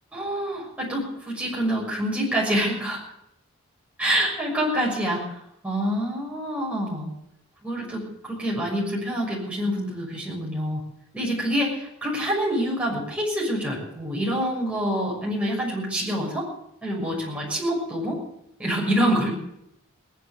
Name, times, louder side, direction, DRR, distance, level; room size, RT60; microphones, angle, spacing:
voice 1, 0.1-3.0 4.0-5.4 5.6-7.1 7.6-10.8 11.1-16.5 16.8-18.2 18.6-19.3, equal, 5° right, -4 dB, 6.5 m, -26 dB
19.0 x 11.0 x 6.6 m, 0.79 s
head